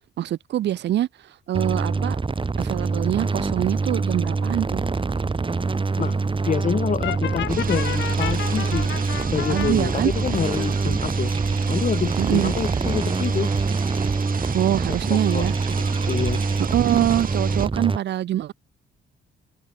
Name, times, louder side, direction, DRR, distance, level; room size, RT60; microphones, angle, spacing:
voice 1, 0.2-1.1 1.5-2.2 2.6-4.8 9.5-10.1 12.2-12.6 14.5-15.5 16.6-18.5, right 12 dB, 60° right, 0.6 m, -24 dB
sound 1, 1.5-18.0, right 4 dB, 25° right, 2.7 m, -25 dB
voice 2, 6.4-8.9 9.3-11.3 11.7-13.5 14.9-15.5 15.7-16.4, left 7 dB, 40° left, 1.1 m, -27 dB
Brass instrument, 7.0-9.7, left 11 dB, 70° left, 1.6 m, -31 dB
sound 2, 7.5-17.7, right 7 dB, 45° right, 4.0 m, -32 dB
cardioid pair, 90°, 20 cm